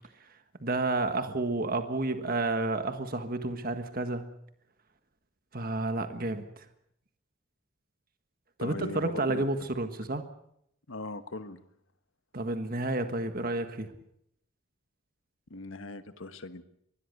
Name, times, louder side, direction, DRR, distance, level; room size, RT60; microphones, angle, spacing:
voice 1, 0.6-4.2 5.5-6.7 8.6-10.2 12.3-13.9, right 2 dB, 45° right, 8 dB, 1.6 m, -30 dB
voice 2, 8.6-9.5 10.9-11.6 15.5-16.6, left 2 dB, 80° left, 10 dB, 1.5 m, -39 dB
24.5 x 20.0 x 6.7 m, 0.74 s
head